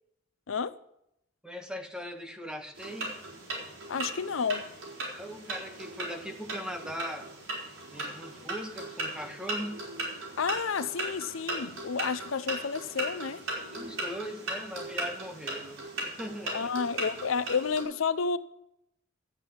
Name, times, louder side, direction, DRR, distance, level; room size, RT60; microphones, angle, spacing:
voice 1, 1.4-3.2 5.1-7.3 7.8-9.8 13.7-16.7, equal, 5° right, 1.3 m, -40 dB
sound 1, 2.7-17.8, right 2 dB, 85° right, 4.6 m, -38 dB
voice 2, 3.9-4.7 10.4-13.5 16.5-18.4, left 5 dB, 90° left, 0.6 m, -30 dB
12.5 x 8.1 x 7.5 m
head